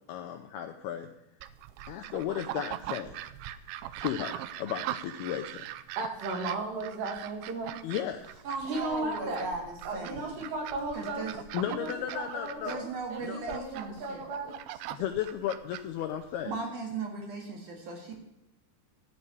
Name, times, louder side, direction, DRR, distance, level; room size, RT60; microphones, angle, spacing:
voice 1, 0.1-1.1 1.9-3.2 4.0-5.7 7.8-8.4 11.5-12.8 13.2-13.4 14.9-16.6, left 10 dB, 80° left, 5 dB, 2.3 m, -34 dB
sound 1, 1.4-16.6, right 13 dB, 85° right, 2.8 m, -41 dB
voice 2, 6.0-7.8 8.7-9.5 9.9-11.3 11.7-14.6, right 2 dB, 70° right, 1 dB, 4.2 m, -35 dB
voice 3, 8.4-10.5 10.9-11.4 12.7-14.3 16.4-18.1, right 3 dB, 55° right, 0 dB, 2.8 m, -37 dB
13.0 x 5.5 x 8.6 m, 0.91 s
omnidirectional pair, 5.3 m